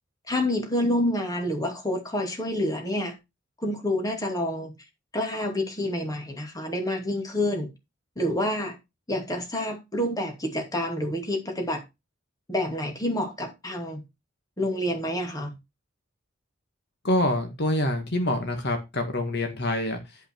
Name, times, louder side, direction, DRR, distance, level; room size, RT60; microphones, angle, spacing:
voice 1, 0.3-3.2 3.6-4.7 5.1-7.7 8.2-8.8 9.1-11.8 12.5-14.0 14.6-15.5, left 1 dB, 20° left, 2.5 m, -28 dB
voice 2, 17.0-20.0, left 1 dB, 55° left, 1.7 m, -26 dB
11.5 x 5.5 x 4.6 m
head